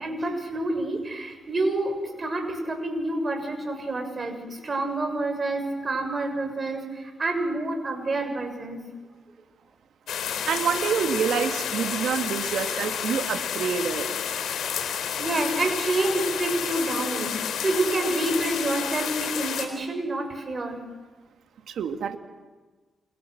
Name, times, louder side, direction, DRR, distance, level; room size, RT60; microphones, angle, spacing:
voice 1, 0.0-8.8 15.2-20.8, right 2 dB, 40° right, 5 dB, 6.9 m, -28 dB
sound 1, 10.1-19.7, left 8 dB, 80° left, 4.1 m, -30 dB
voice 2, 10.5-14.1 21.7-22.2, right 7 dB, 75° right, 7 dB, 2.1 m, -27 dB
28.5 x 28.5 x 6.7 m, 1.3 s
cardioid pair, 60°, 0 cm